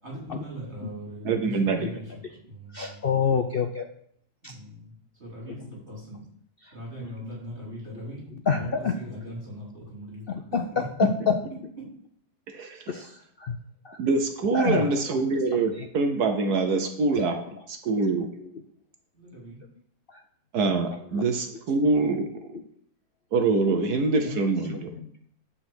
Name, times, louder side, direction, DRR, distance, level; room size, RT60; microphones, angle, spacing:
voice 1, 0.0-2.0 2.4-3.3 4.4-4.9 5.2-5.6 5.9-6.2 6.7-8.2 8.5-10.2 10.7-10.8 19.1-19.6, equal, 40° right, -5 dB, 4.7 m, -40 dB
voice 2, 1.2-1.9 12.5-12.8 14.0-17.4 17.7-18.3 20.5-22.3 23.3-24.9, right 3 dB, 70° right, 6 dB, 1.4 m, -24 dB
voice 3, 2.7-3.8 4.4-4.5 5.5-5.6 8.5-9.0 10.3-11.4 12.9-13.1 13.4-13.6 13.9-14.0 14.5-14.9 15.8-15.9 17.1-17.3 18.4-18.5 21.1-21.2 22.5-22.6 24.2-24.4 25.0-25.1, left 6 dB, 70° left, 5 dB, 0.5 m, -27 dB
9.8 x 4.3 x 7.7 m, 0.69 s
omnidirectional pair, 1.8 m